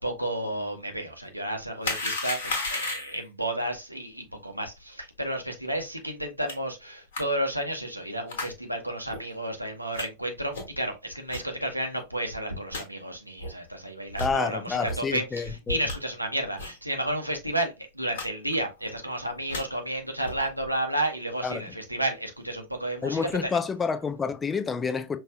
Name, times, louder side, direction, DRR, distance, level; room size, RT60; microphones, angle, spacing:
voice 1, 0.0-23.5, right 1 dB, 90° right, 0.8 m, -32 dB
sound 1, 1.8-3.3 6.5-6.6 7.1-7.2 8.3-8.5 9.1-9.2 9.9-10.1 10.5-10.8 11.3-11.4 12.0-12.1 12.3-12.4 12.7-12.8 13.4-13.5 14.1-14.3 14.8-15.0 15.4-16.0 16.6-16.8 17.1-17.2 17.4-17.6 18.1-18.3 18.5-18.9 19.3-19.6 20.2-20.5, left 2 dB, 60° left, 1.4 m, -33 dB
voice 2, 14.2-15.8 21.4-21.6 23.0-25.2, left 5 dB, 15° left, 0.4 m, -28 dB
5.4 x 2.6 x 2.2 m
figure-of-eight pair, 90°, 0 cm